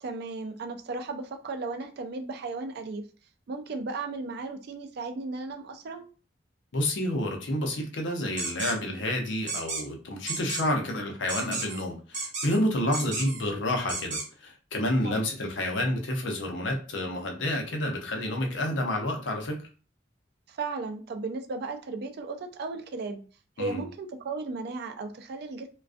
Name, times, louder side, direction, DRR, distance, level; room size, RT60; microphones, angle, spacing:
voice 1, 0.0-3.1 3.5-6.1 15.0-15.1 20.5-23.2 23.6-25.7, right 3 dB, 60° right, 6 dB, 0.4 m, -35 dB
voice 2, 6.7-19.6 23.6-23.8, left 1 dB, 75° left, 2 dB, 0.6 m, -29 dB
sound 1, 8.4-8.7 9.5-9.8 10.3-10.6 11.3-11.8 12.1-12.6 12.9-13.4 13.9-14.2, right 3 dB, 40° right, 0.8 m, -32 dB
2.4 x 2.2 x 2.3 m, 0.37 s
head